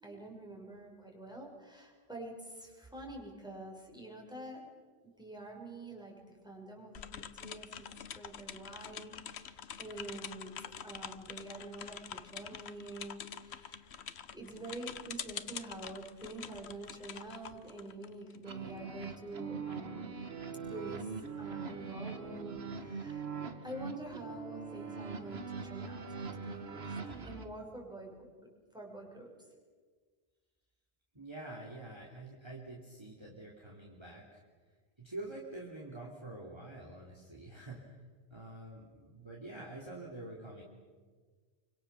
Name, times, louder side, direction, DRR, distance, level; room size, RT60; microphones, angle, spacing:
voice 1, 0.0-4.7 5.2-7.9 8.2-20.2 20.7-23.3 23.6-26.1 26.3-27.0 27.2-28.5 28.7-29.3, right 2 dB, 5° right, -1 dB, 6.0 m, -47 dB
sound 1, 6.9-18.5, left 8 dB, 90° left, 1.2 m, -46 dB
sound 2, 18.4-27.4, right 5 dB, 75° right, 1.8 m, -42 dB
voice 2, 31.1-34.4 35.0-38.0 38.3-40.6, right 2 dB, 25° right, -2 dB, 3.3 m, -46 dB
28.0 x 25.0 x 7.0 m, 1.5 s
omnidirectional pair, 1.1 m